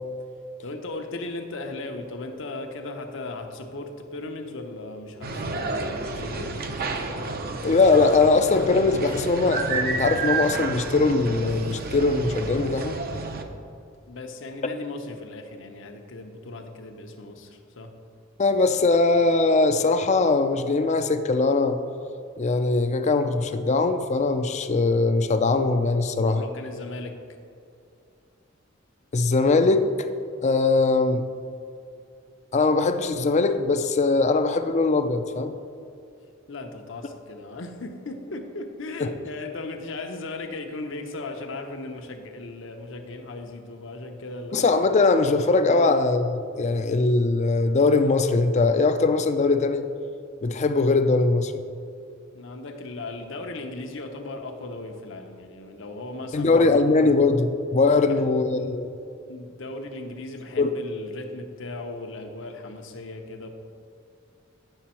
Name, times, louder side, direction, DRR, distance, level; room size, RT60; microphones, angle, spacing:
voice 1, 0.6-6.8 14.1-17.9 26.3-27.2 36.5-44.6 45.7-46.0 52.3-56.8 57.9-58.2 58.6-58.8 59.3-63.5, left 2 dB, 65° left, 4 dB, 0.8 m, -37 dB
sound 1, 5.2-13.4, right 3 dB, 50° right, 0.6 m, -30 dB
voice 2, 7.6-13.0 18.4-21.8 22.4-26.4 29.1-30.1 30.4-31.2 32.5-35.5 39.0-39.1 44.5-46.3 46.6-49.9 50.4-51.6 56.3-58.9 60.6-60.7, left 3 dB, 35° left, 9 dB, 0.4 m, -21 dB
9.0 x 6.1 x 4.3 m, 2.5 s
head